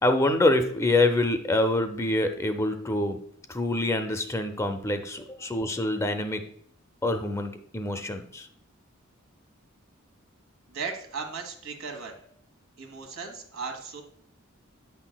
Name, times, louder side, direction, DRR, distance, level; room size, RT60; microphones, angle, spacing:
voice 1, 0.0-3.2 3.5-6.5 7.0-8.5, left 2 dB, 15° left, 7 dB, 0.4 m, -26 dB
voice 2, 10.7-12.2 12.8-14.0, right 5 dB, 85° right, 4 dB, 1.3 m, -36 dB
8.8 x 5.8 x 2.2 m, 0.64 s
head